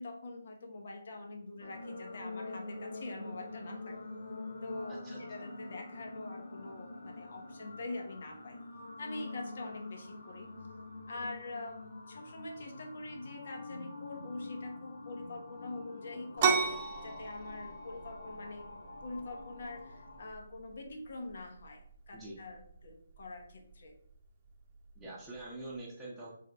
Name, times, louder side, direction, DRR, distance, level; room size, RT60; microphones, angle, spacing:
voice 1, 0.0-4.0 4.6-8.6 9.0-10.5 11.1-16.7 17.0-18.7 19.0-23.9, left 2 dB, 60° left, 3 dB, 1.1 m, -44 dB
sound 1, 1.6-20.3, left 2 dB, 85° left, 0.8 m, -46 dB
voice 2, 4.9-5.2 22.1-22.3 25.0-26.3, right 2 dB, 5° right, -8 dB, 0.9 m, -45 dB
sound 2, 16.4-25.8, right 5 dB, 35° right, 0.8 m, -38 dB
3.9 x 3.5 x 3.5 m, 0.66 s
hypercardioid pair, 155°, 0 cm